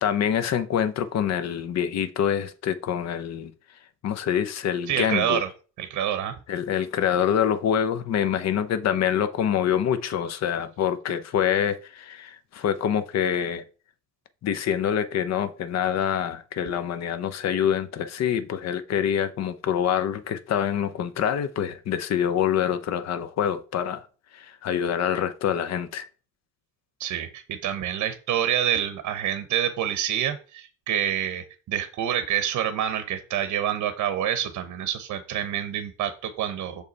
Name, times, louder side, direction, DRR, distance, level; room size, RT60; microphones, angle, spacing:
voice 1, 0.0-3.5 4.0-5.4 6.5-13.6 14.4-24.0 24.3-26.1, left 9 dB, 60° left, 0.8 m, -26 dB
voice 2, 4.9-5.5 5.8-6.4 27.0-36.8, right 10 dB, 80° right, 0.8 m, -27 dB
6.5 x 5.4 x 4.0 m
cardioid pair, 150°, 29 cm